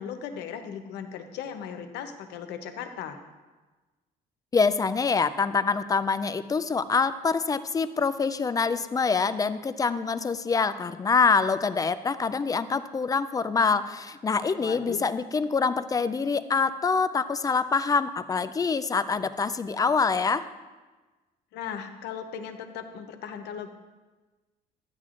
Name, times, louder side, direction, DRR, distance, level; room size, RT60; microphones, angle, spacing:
voice 1, 0.0-3.2 14.6-15.0 21.5-23.7, left 8 dB, 85° left, 7 dB, 0.8 m, -37 dB
voice 2, 4.5-20.5, left 5 dB, 20° left, 13 dB, 0.4 m, -25 dB
12.5 x 9.6 x 2.5 m, 1.3 s
cardioid pair, 110°, 17 cm